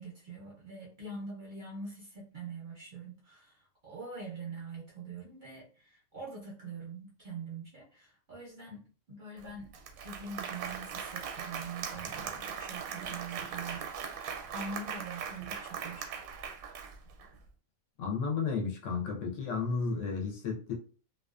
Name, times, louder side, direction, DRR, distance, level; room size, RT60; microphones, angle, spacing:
voice 1, 0.0-3.6 3.8-9.7 10.0-16.2, right 3 dB, 50° right, 0.6 m, -44 dB
Applause, 9.4-9.5 9.7-17.3, right 7 dB, 90° right, 1.0 m, -40 dB
voice 2, 18.0-20.7, left 5 dB, 70° left, 0.9 m, -33 dB
2.3 x 2.3 x 2.3 m
omnidirectional pair, 1.4 m